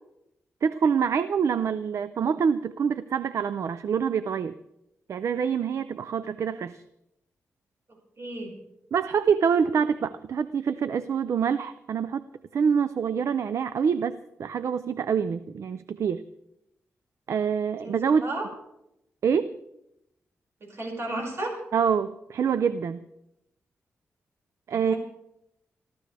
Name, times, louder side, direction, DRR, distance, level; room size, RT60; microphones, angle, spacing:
voice 1, 0.6-4.5 5.1-6.8 8.9-12.2 12.5-16.3 17.3-18.3 19.2-19.6 21.7-23.0 24.7-24.9, right 6 dB, 70° right, 14 dB, 0.5 m, -26 dB
voice 2, 8.2-8.5 17.8-18.5 20.6-21.5 24.8-25.0, right 2 dB, 55° right, 0 dB, 5.8 m, -33 dB
25.5 x 14.0 x 3.4 m, 0.84 s
cardioid pair, 75°, 5 cm